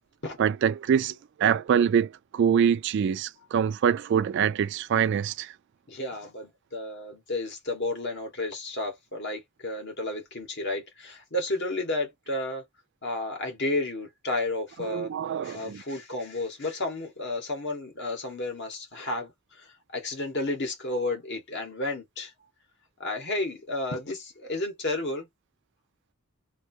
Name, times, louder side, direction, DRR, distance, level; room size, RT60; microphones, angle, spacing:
voice 1, 0.4-5.5 14.9-15.8, right 8 dB, 55° right, 0.3 m, -25 dB
voice 2, 5.9-12.6 13.0-15.1 15.4-22.3 23.0-25.3, left 2 dB, 55° left, 1.6 m, -32 dB
3.1 x 2.8 x 2.8 m
head